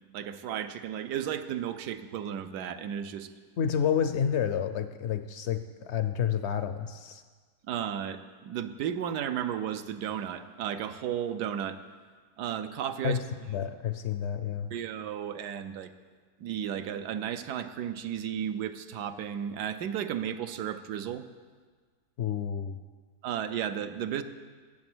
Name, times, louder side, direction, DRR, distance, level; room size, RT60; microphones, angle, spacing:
voice 1, 0.1-3.3 7.7-11.8 12.4-13.2 14.7-15.9 16.4-21.2 23.2-24.2, right 9 dB, 85° right, 10 dB, 1.3 m, -34 dB
voice 2, 3.6-7.2 13.0-14.7 22.2-22.8, left 8 dB, 70° left, 11 dB, 0.6 m, -30 dB
16.0 x 7.5 x 6.1 m, 1.5 s
omnidirectional pair, 1.7 m